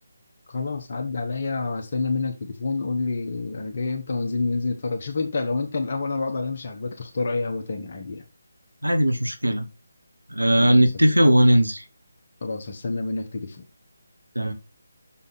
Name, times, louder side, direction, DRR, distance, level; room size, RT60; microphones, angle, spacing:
voice 1, 0.5-8.2 10.6-10.9 12.4-13.6, left 3 dB, 45° left, 1.5 m, -28 dB
voice 2, 8.8-9.7 10.3-11.8 14.3-14.5, right 1 dB, 85° right, 1.5 m, -18 dB
6.9 x 5.7 x 4.2 m
figure-of-eight pair, 155°, 0 cm